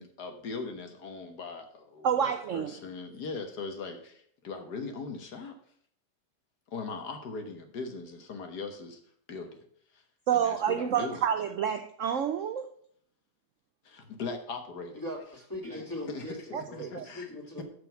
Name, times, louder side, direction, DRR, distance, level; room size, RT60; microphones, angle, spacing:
voice 1, 0.0-5.5 6.7-9.0 9.3-9.6 9.9-10.0 10.3-11.2 13.8-15.0 16.1-17.3, left 4 dB, 70° left, 1.7 m, -40 dB
voice 2, 2.0-2.7 10.3-12.7 16.5-17.1, right 8 dB, 65° right, 0.8 m, -29 dB
voice 3, 14.9-17.6, left 1 dB, 10° left, 2.4 m, -40 dB
6.8 x 6.4 x 7.1 m
omnidirectional pair, 1.8 m